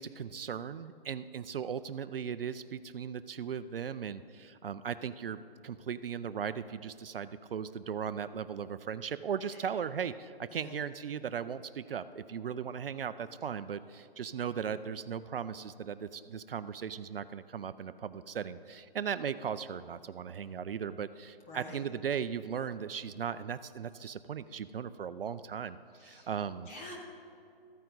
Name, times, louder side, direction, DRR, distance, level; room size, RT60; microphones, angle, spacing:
voice 1, 0.0-26.7, right 7 dB, 65° right, 14 dB, 0.4 m, -37 dB
voice 2, 21.5-21.8 26.0-26.3 26.7-27.0, left 2 dB, 15° left, -2 dB, 0.9 m, -47 dB
14.0 x 9.2 x 3.9 m, 2.5 s
hypercardioid pair, 165°, 31 cm